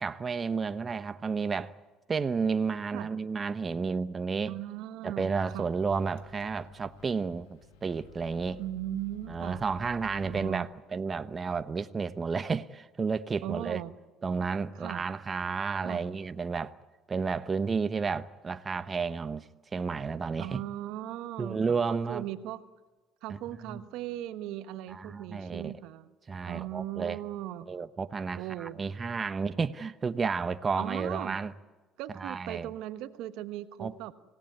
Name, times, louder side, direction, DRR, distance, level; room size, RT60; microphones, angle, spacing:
voice 1, 0.0-1.7 2.1-4.5 5.0-8.6 9.3-13.8 14.2-16.7 17.1-20.6 21.4-22.2 23.7-23.8 24.9-25.8 26.3-27.2 27.7-31.5 32.2-32.7 33.8-34.1, right 5 dB, 35° right, 0.9 m, -32 dB
voice 2, 4.5-5.7 8.6-9.6 10.3-10.7 13.4-13.9 14.7-15.0 15.8-16.0 20.4-22.6 23.2-26.1 26.4-27.7 28.3-28.8 30.7-31.4 32.0-34.1, right 13 dB, 75° right, 1.3 m, -38 dB
Microwave oven, 5.4-10.5, left 7 dB, 80° left, 1.8 m, -53 dB
26.5 x 17.5 x 9.5 m
hypercardioid pair, 65°, 0 cm